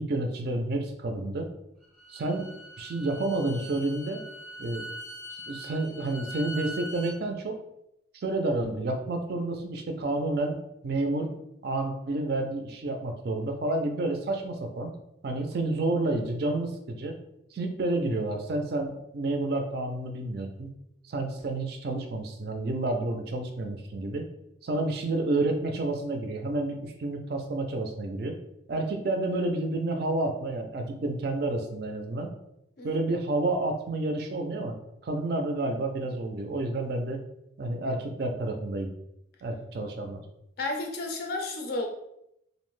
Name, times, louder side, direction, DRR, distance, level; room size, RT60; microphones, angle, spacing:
voice 1, 0.0-1.5 2.1-4.2 4.6-4.9 5.5-7.6 8.1-10.6 10.8-11.3 11.6-14.9 15.2-17.1 17.5-20.7 21.1-24.2 24.6-28.4 28.7-32.3 32.8-34.8 35.0-37.2 37.6-38.9 39.4-40.2, right 2 dB, 55° right, 4 dB, 0.4 m, -30 dB
Bowed string instrument, 1.8-7.2, equal, ahead, 0.5 m, -42 dB
voice 2, 40.6-41.9, left 2 dB, 50° left, 2 dB, 0.4 m, -32 dB
2.5 x 2.0 x 3.1 m, 0.80 s
head